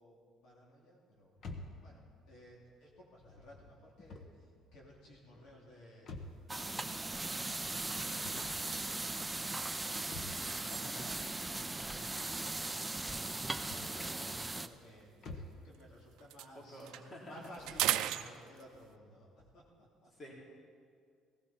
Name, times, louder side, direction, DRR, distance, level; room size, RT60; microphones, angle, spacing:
voice 1, 0.0-1.5 1.7-20.1, equal, 60° left, -3 dB, 2.7 m, -57 dB
sound 1, 1.4-15.7, left 2 dB, 45° left, 1.3 m, -52 dB
sound 2, 6.3-6.5 7.0-7.1 7.5-11.4 12.3-15.8 16.1-19.0, right 13 dB, 80° right, 0.5 m, -42 dB
sound 3, 6.5-14.7, right 2 dB, 10° right, 0.5 m, -39 dB
voice 2, 10.7-11.1 16.4-17.3 20.2-20.3, left 1 dB, 30° left, -3 dB, 3.3 m, -50 dB
17.0 x 15.5 x 4.3 m, 2.2 s
cardioid pair, 140°, 0 cm